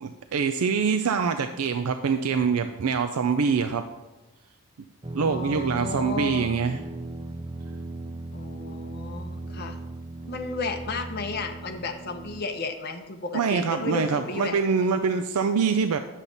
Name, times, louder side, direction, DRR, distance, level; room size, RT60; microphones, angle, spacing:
voice 1, 0.0-3.8 5.1-6.8 13.3-16.0, right 5 dB, 85° right, 7 dB, 0.5 m, -25 dB
sound 1, 5.0-12.4, right 2 dB, 20° right, 0.5 m, -37 dB
voice 2, 5.2-6.6 8.3-9.8 10.3-14.8, left 3 dB, 45° left, 4 dB, 0.8 m, -33 dB
9.9 x 7.3 x 4.0 m, 1.1 s
head